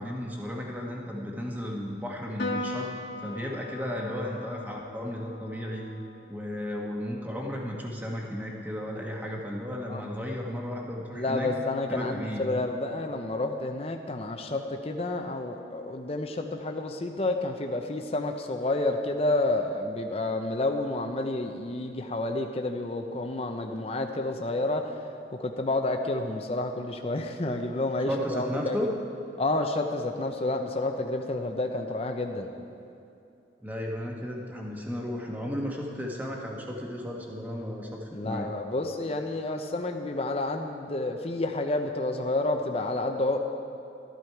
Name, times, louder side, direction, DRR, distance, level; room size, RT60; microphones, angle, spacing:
voice 1, 0.0-2.9 3.2-5.9 6.3-11.5 11.9-12.4 28.1-28.9 33.6-38.5, left 1 dB, 10° right, -1 dB, 1.3 m, -34 dB
Piano, 2.4-9.1, left 1 dB, 65° left, 1.4 m, -40 dB
voice 2, 11.1-25.0 25.3-28.8 29.4-32.5 38.1-43.4, left 2 dB, 30° left, 4 dB, 0.6 m, -30 dB
13.0 x 12.0 x 4.6 m, 2.8 s
head